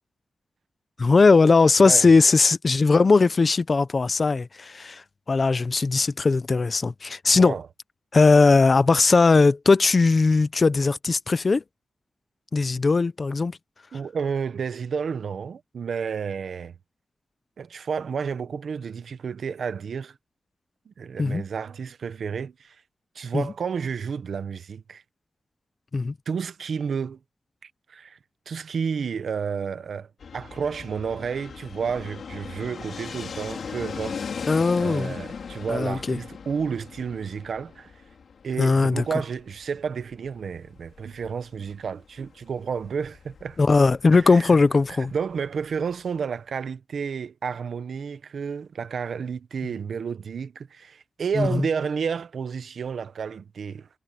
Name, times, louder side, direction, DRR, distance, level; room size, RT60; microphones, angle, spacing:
voice 1, 1.0-5.0 5.3-7.6 8.1-11.6 12.5-13.6 21.2-21.4 23.3-23.4 25.9-26.1 34.5-35.1 35.7-36.2 38.6-39.0 43.6-45.1 51.4-51.6, left 4 dB, 35° left, 0.7 m, -19 dB
voice 2, 13.9-16.7 17.6-20.2 20.9-22.8 23.1-25.0 26.3-27.2 27.6-28.2 28.5-34.2 34.8-37.9 38.4-43.6 44.1-44.6 44.9-53.9, right 6 dB, 75° right, 1.1 m, -31 dB
Fixed-wing aircraft airplane, 30.2-45.9, left 6 dB, 70° left, 3.8 m, -39 dB
wide cardioid pair, 160°, 0 cm